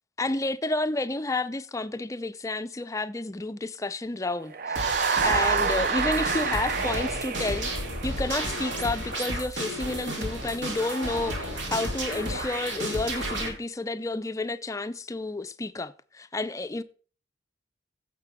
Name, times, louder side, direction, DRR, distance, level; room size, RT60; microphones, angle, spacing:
voice 1, 0.2-4.8 5.2-16.8, left 2 dB, 15° left, 0.4 m, -30 dB
sound 1, 4.5-8.4, right 5 dB, 50° right, 0.6 m, -27 dB
sound 2, 4.8-13.5, right 1 dB, 70° right, 2.7 m, -32 dB
16.0 x 6.6 x 3.5 m
head